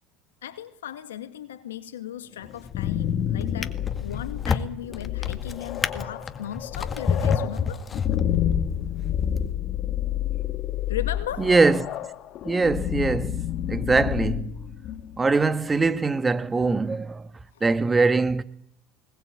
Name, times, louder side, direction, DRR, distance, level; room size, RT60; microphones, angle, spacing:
voice 1, 0.4-7.8 10.9-11.5 17.6-17.7, left 11 dB, 90° left, 2.0 m, -37 dB
Drawer open or close, 2.4-2.9 3.4-8.6 9.3-9.5, left 5 dB, 30° left, 1.8 m, -29 dB
sound 1, 2.5-15.3, left 10 dB, 55° left, 2.1 m, -29 dB
voice 2, 11.4-11.9 12.4-14.5 15.2-17.3 17.6-18.4, right 3 dB, 20° right, 1.5 m, -22 dB
20.5 x 19.5 x 8.7 m
hypercardioid pair, 80°, 0 cm